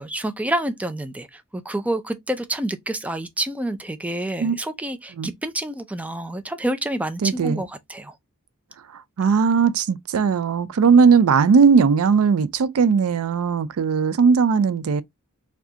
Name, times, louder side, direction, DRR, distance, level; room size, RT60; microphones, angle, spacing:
voice 1, 0.0-8.1, right 1 dB, 5° right, 0.4 m, -28 dB
voice 2, 7.2-7.6 9.2-15.0, right 5 dB, 75° right, 0.4 m, -18 dB
4.7 x 2.3 x 2.7 m
head